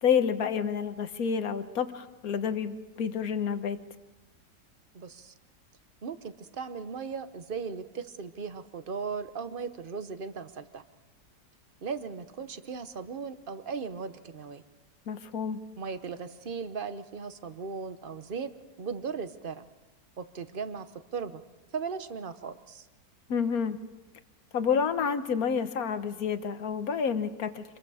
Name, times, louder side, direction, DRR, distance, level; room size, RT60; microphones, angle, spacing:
voice 1, 0.0-3.8 15.1-15.6 23.3-23.8 24.5-27.6, left 7 dB, 60° left, 10 dB, 1.5 m, -29 dB
voice 2, 4.9-5.3 6.0-10.8 11.8-14.6 15.8-18.5 18.8-19.6 20.2-20.9 21.1-21.4 21.7-22.9, right 5 dB, 40° right, 11 dB, 0.9 m, -37 dB
27.0 x 22.5 x 4.9 m, 1.0 s
omnidirectional pair, 1.8 m